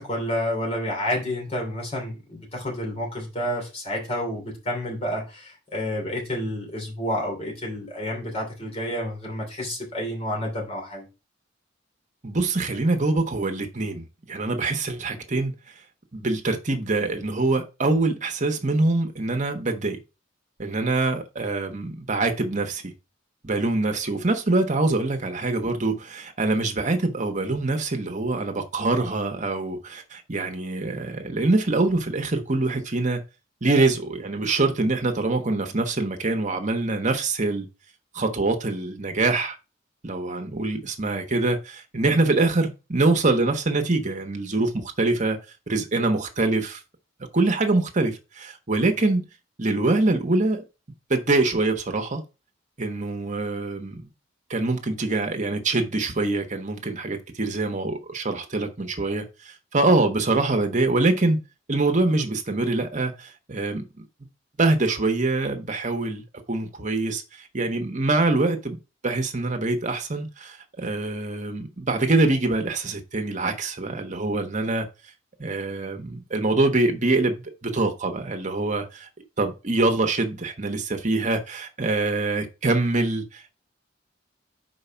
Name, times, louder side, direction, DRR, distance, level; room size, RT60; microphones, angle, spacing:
voice 1, 0.0-11.1, left 1 dB, 35° left, 2.8 m, -29 dB
voice 2, 12.2-15.5 16.1-20.0 20.6-22.9 23.4-33.2 33.6-37.7 38.1-39.6 40.0-45.4 45.7-46.8 47.3-49.3 49.6-50.6 51.1-52.2 52.8-54.1 54.5-61.4 61.7-64.1 64.6-68.8 69.0-74.9 75.4-79.1 79.4-83.5, right 2 dB, 40° right, 1.2 m, -24 dB
4.8 x 4.8 x 5.7 m
head